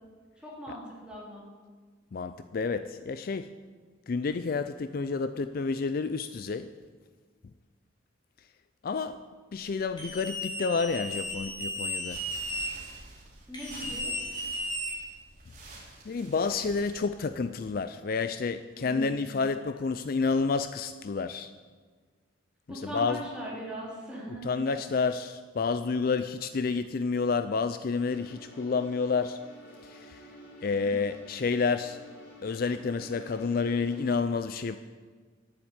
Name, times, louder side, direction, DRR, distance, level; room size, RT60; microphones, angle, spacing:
voice 1, 0.4-1.5 13.5-14.1 18.7-19.4 22.7-24.5, right 1 dB, 5° right, -6 dB, 3.4 m, -40 dB
voice 2, 2.1-3.5 4.1-6.7 8.8-9.2 9.5-12.2 16.0-21.5 22.7-23.2 24.4-29.4 29.8-30.2 30.6-32.0 32.4-34.8, left 4 dB, 45° left, 11 dB, 0.4 m, -29 dB
sound 1, 10.0-12.7 13.5-15.3, equal, 20° left, 3.0 m, -35 dB
sound 2, 11.9-17.6, right 2 dB, 35° right, 2.7 m, -49 dB
sound 3, 28.0-34.1, equal, 70° left, 3.6 m, -50 dB
10.5 x 8.6 x 8.1 m, 1.5 s
head